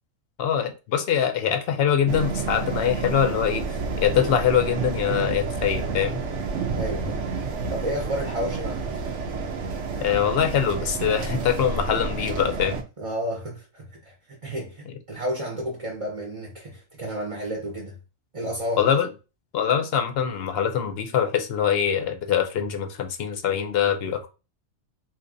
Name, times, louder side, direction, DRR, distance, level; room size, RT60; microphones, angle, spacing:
voice 1, 0.4-6.2 10.0-12.8 14.9-15.0 18.8-19.1 19.5-24.3, left 8 dB, 60° left, 0.8 m, -23 dB
sound 1, 2.1-12.8, right 4 dB, 70° right, 1.0 m, -30 dB
voice 2, 6.7-7.2 7.7-8.9 13.0-18.0 18.3-18.8, equal, 30° right, 0.7 m, -31 dB
3.8 x 2.8 x 2.6 m
omnidirectional pair, 1.3 m